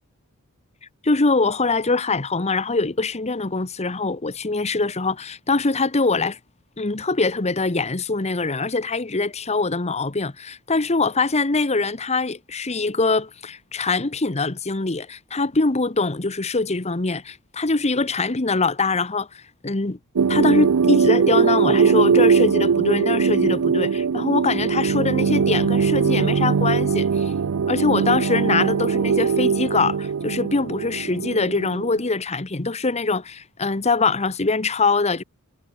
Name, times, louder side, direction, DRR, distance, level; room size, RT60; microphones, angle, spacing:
voice 1, 1.0-6.4 6.8-20.0 20.3-27.3 27.7-35.2, left 3 dB, 30° left, 1.1 m, -23 dB
sound 1, 20.2-32.1, right 6 dB, 90° right, 0.5 m, -20 dB
head